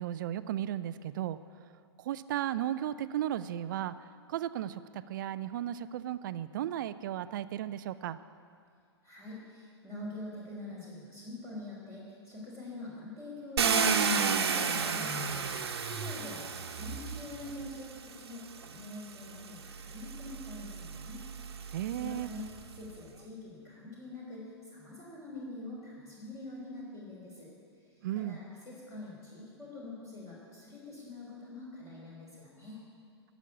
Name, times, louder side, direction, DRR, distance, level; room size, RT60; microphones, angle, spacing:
voice 1, 0.0-1.4 2.0-3.9 4.3-8.2 21.7-22.3 28.0-28.4, right 12 dB, 45° right, 14 dB, 0.4 m, -35 dB
voice 2, 9.0-15.5 15.8-21.2 22.0-27.5 28.1-32.8, left 2 dB, 20° left, -5 dB, 3.4 m, -45 dB
Car, 13.6-17.7 18.6-18.7 19.3-22.5, right 5 dB, 65° right, 1.1 m, -32 dB
13.0 x 7.1 x 8.2 m, 2.2 s
figure-of-eight pair, 110°, 14 cm